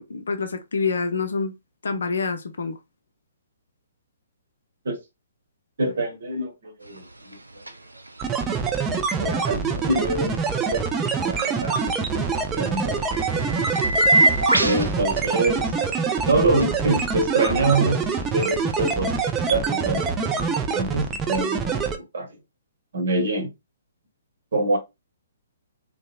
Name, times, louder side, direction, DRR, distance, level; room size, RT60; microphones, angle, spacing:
voice 1, 0.0-1.5 1.8-2.8, left 4 dB, 65° left, 0.5 m, -27 dB
voice 2, 5.8-7.0 9.2-10.3 10.7-13.6 14.6-15.9 16.2-18.0 18.3-19.1 19.5-21.8 22.1-22.3 22.9-23.5 24.5-24.8, right 2 dB, 60° right, 0.9 m, -25 dB
sound 1, 6.8-19.3, right 1 dB, 85° right, 0.4 m, -29 dB
sound 2, 8.2-22.0, right 5 dB, 15° right, 0.4 m, -25 dB
2.8 x 2.1 x 2.3 m
figure-of-eight pair, 125°, 0 cm